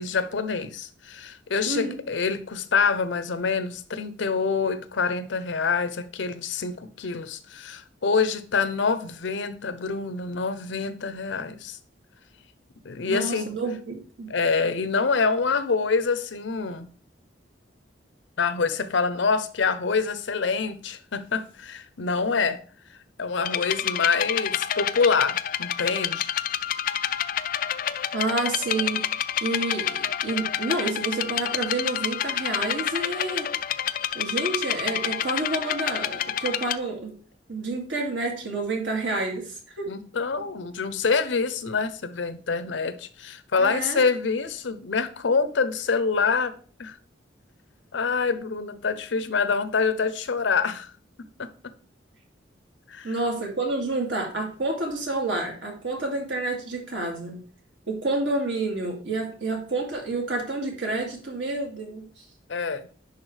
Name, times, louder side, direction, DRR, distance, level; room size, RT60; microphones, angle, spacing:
voice 1, 0.0-11.8 12.8-13.5 14.3-16.9 18.4-22.6 23.2-26.3 39.9-46.5 46.8-47.0 47.9-50.9 51.2-51.7 52.9-53.1 62.5-62.9, left 5 dB, 80° left, 0.7 m, -26 dB
voice 2, 1.7-2.0 13.0-14.3 28.1-33.5 34.1-37.2 37.5-39.9 43.6-44.0 53.0-57.4 57.9-62.1, right 2 dB, 85° right, 2.3 m, -29 dB
sound 1, 23.4-36.8, left 10 dB, 50° left, 0.3 m, -28 dB
10.5 x 4.0 x 3.3 m
head